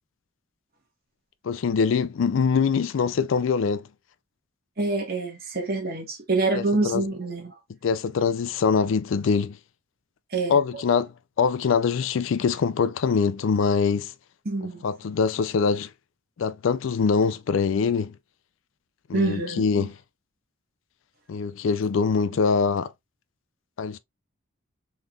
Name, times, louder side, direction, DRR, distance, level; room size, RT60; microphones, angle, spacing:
voice 1, 1.4-3.8 6.5-7.0 7.8-9.6 10.5-11.1 11.4-14.1 14.8-15.9 16.4-18.1 19.1-20.0 21.3-22.9 23.8-24.0, left 5 dB, 75° left, 0.4 m, -23 dB
voice 2, 4.8-7.5 10.3-10.6 14.4-14.8 19.1-19.9, right 2 dB, 45° right, 1.3 m, -26 dB
3.8 x 3.2 x 2.3 m
head